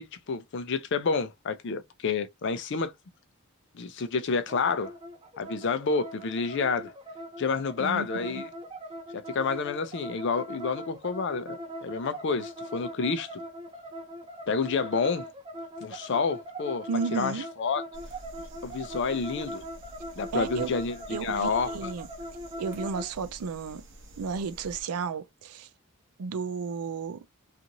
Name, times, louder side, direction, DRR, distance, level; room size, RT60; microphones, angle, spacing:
voice 1, 0.0-2.9 3.7-4.9 5.4-6.9 7.4-8.5 9.1-13.3 14.5-15.3 15.8-17.8 18.6-19.6 20.2-21.9, left 5 dB, 55° left, 0.4 m, -29 dB
sound 1, 4.5-23.1, equal, 25° right, 0.5 m, -40 dB
voice 2, 7.8-8.4 16.9-17.4 20.3-20.7 21.1-22.1 22.6-23.8 24.2-25.7 26.2-27.2, right 5 dB, 90° right, 0.5 m, -33 dB
sound 2, 17.9-24.8, right 1 dB, 55° right, 0.8 m, -49 dB
2.6 x 2.5 x 2.8 m
head